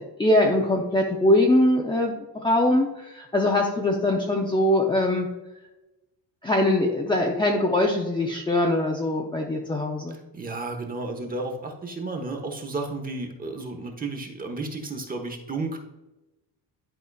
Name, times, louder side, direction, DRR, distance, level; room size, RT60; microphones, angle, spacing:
voice 1, 0.0-2.2 2.4-5.3 6.4-10.2, left 1 dB, 10° left, -1 dB, 0.6 m, -22 dB
voice 2, 10.1-15.8, right 3 dB, 20° right, 3 dB, 1.0 m, -33 dB
11.0 x 4.8 x 2.3 m, 1.0 s
cardioid pair, 145°, 45 cm